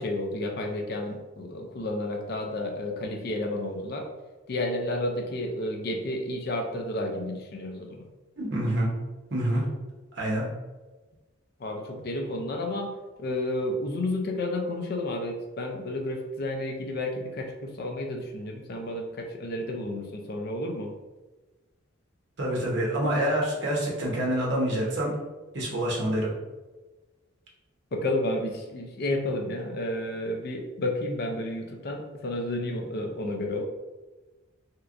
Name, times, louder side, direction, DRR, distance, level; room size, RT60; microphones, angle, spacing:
voice 1, 0.0-4.1 4.5-8.1 11.6-12.9 13.2-20.9 27.9-33.6, left 1 dB, 50° left, 3 dB, 0.5 m, -31 dB
voice 2, 8.4-8.9 9.3-9.6 10.1-10.5 22.4-25.1 25.5-26.3, right 1 dB, 60° right, -3 dB, 0.9 m, -26 dB
3.3 x 2.9 x 2.5 m, 1.2 s
head